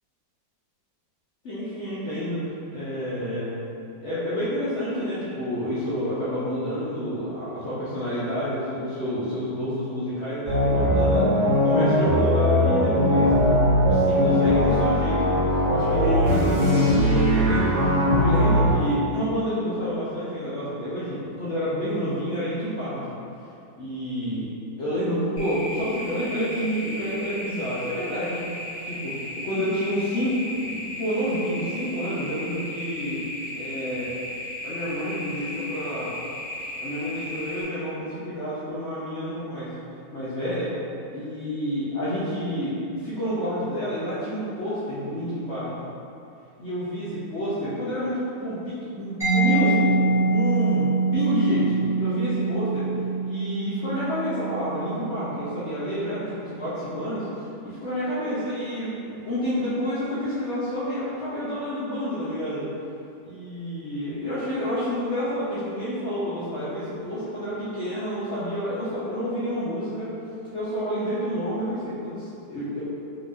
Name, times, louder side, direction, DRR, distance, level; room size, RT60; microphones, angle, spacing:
voice 1, 1.4-3.6 4.0-13.3 13.8-23.2 23.8-24.5 24.8-29.1 29.4-33.2 33.5-34.1 34.6-36.1 36.8-39.7 40.1-40.7 41.1-45.7 46.6-52.9 53.2-62.6 63.2-70.1 70.5-72.8, equal, 85° left, -11 dB, 0.6 m, -29 dB
sound 1, 10.5-18.7, equal, 65° right, 1.4 m, -20 dB
sound 2, 25.4-37.6, left 1 dB, 50° left, 0.8 m, -35 dB
Mallet percussion, 49.2-56.7, right 4 dB, ahead, 0.9 m, -25 dB
3.8 x 2.9 x 2.5 m, 2.6 s
omnidirectional pair, 2.1 m